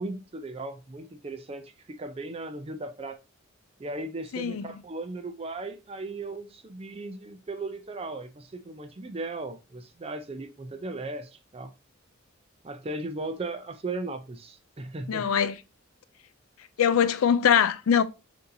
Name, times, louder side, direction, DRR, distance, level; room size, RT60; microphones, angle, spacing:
voice 1, 0.0-3.2 3.8-11.7 12.6-15.3, right 2 dB, 30° right, 0.4 m, -37 dB
voice 2, 4.3-4.7 15.1-15.5 16.8-18.0, left 8 dB, 85° left, 0.4 m, -22 dB
6.5 x 2.7 x 2.6 m
head